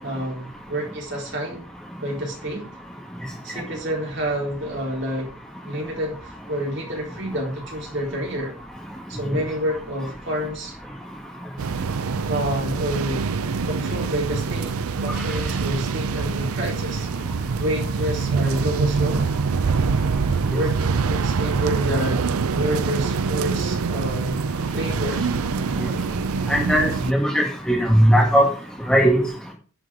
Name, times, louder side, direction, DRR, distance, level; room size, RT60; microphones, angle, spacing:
voice 1, 0.0-1.6 2.0-2.7 3.4-5.3 5.6-8.5 9.1-10.7 12.3-13.3 13.6-14.8 15.0-17.1 17.6-19.3 20.5-22.2 22.5-24.4 24.7-25.3, equal, 55° right, 4.2 m, -28 dB
sound 1, 11.6-27.1, right 5 dB, 85° right, 0.5 m, -25 dB
voice 2, 26.5-28.5 28.9-29.2, equal, 5° left, 2.0 m, -18 dB
11.0 x 6.5 x 4.9 m
head